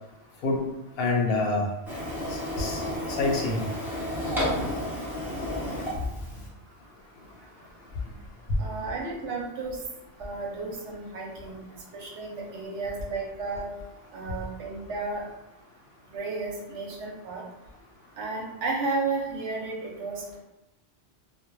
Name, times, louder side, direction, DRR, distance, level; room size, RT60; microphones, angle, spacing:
voice 1, 1.0-1.7 2.3-2.8 3.1-3.6, left 3 dB, 65° left, -1 dB, 0.8 m, -26 dB
Printer, 1.9-6.5, left 1 dB, 5° right, 0.3 m, -31 dB
voice 2, 8.6-9.8 10.2-11.6 11.9-13.6 14.1-15.2 16.1-17.4 18.2-20.4, right 3 dB, 85° right, -2 dB, 0.9 m, -33 dB
2.2 x 2.0 x 3.0 m, 0.94 s
omnidirectional pair, 1.2 m